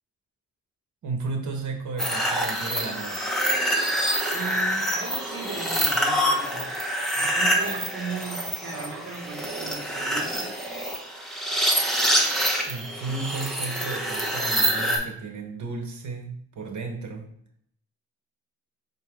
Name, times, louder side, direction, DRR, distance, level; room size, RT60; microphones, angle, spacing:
voice 1, 1.0-3.3 12.7-17.3, right 4 dB, 70° right, 3 dB, 1.3 m, -34 dB
sound 1, 2.0-15.0, equal, ahead, 1.2 m, -26 dB
voice 2, 4.3-6.7 7.1-10.5, right 4 dB, 50° right, -1 dB, 1.7 m, -37 dB
5.9 x 4.5 x 3.6 m, 0.69 s
wide cardioid pair, 115°, 30 cm